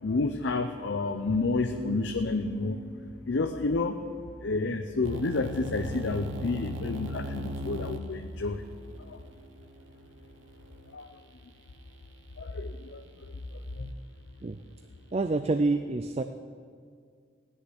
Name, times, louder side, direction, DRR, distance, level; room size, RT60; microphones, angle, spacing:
voice 1, 0.0-2.8 3.3-4.0 4.4-8.6 9.1-9.2 10.9-11.1 12.4-13.0 13.8-13.9, left 3 dB, 80° left, 7 dB, 0.6 m, -30 dB
sound 1, 1.7-5.1, left 1 dB, 10° right, 2.7 m, -45 dB
sound 2, 5.0-10.9, right 1 dB, 85° right, 1.0 m, -39 dB
voice 2, 15.1-16.2, right 3 dB, 35° right, 9 dB, 0.4 m, -27 dB
17.0 x 6.8 x 9.8 m, 2.1 s
head